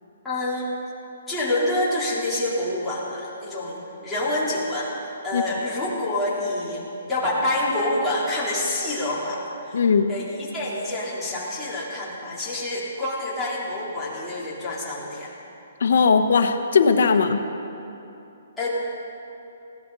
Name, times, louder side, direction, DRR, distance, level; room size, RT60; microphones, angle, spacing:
voice 1, 0.2-0.7 1.3-4.9 5.2-15.3 18.6-18.7, left 1 dB, 5° left, -9 dB, 3.8 m, -27 dB
voice 2, 9.7-10.1 15.8-17.4, left 5 dB, 70° left, 7 dB, 1.3 m, -18 dB
20.5 x 16.5 x 4.1 m, 2.8 s
hypercardioid pair, 155°, 0 cm